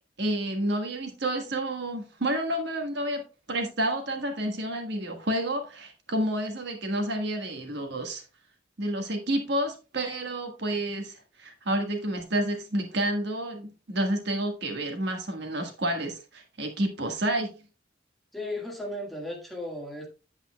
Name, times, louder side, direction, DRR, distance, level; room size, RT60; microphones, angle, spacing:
voice 1, 0.2-3.2 3.5-8.2 8.8-17.5, right 1 dB, 65° right, 1.5 m, -30 dB
voice 2, 18.3-20.1, left 1 dB, ahead, 1.6 m, -35 dB
8.6 x 8.2 x 2.2 m
head